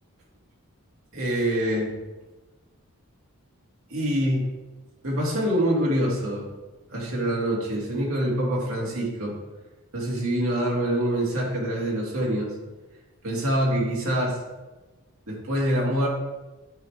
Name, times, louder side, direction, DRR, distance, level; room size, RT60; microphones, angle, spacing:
voice 1, 1.1-1.9 3.9-4.5 5.0-6.5 6.9-9.4 9.9-12.5 13.2-14.4 15.3-16.1, right 1 dB, 75° right, -3 dB, 2.0 m, -25 dB
8.9 x 4.8 x 3.4 m, 1.2 s
head